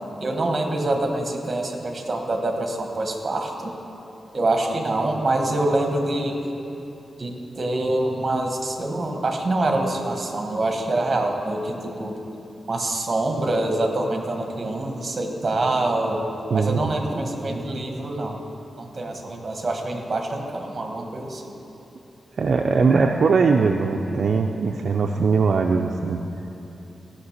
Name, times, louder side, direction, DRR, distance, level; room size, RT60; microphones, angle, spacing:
voice 1, 0.2-3.7 4.3-6.4 7.2-12.2 12.7-18.4 18.8-21.5 22.9-23.2 24.1-24.2, right 2 dB, 30° right, 3 dB, 1.3 m, -25 dB
voice 2, 16.5-16.9 22.4-26.2, right 4 dB, 60° right, 3 dB, 0.4 m, -20 dB
15.0 x 5.8 x 6.5 m, 3.0 s
wide cardioid pair, 155°, 0 cm